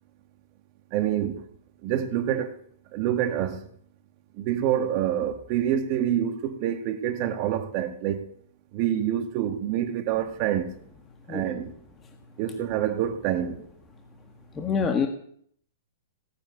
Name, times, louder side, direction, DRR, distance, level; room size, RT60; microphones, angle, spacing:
voice 1, 0.9-1.4 1.8-2.6 2.9-3.7 4.4-8.3 8.7-10.7 11.3-11.7 12.4-13.6, right 10 dB, 40° right, 1.8 m, -27 dB
voice 2, 14.5-15.1, left 6 dB, 20° left, 1.5 m, -26 dB
17.0 x 7.7 x 9.7 m
hypercardioid pair, 140°, 0 cm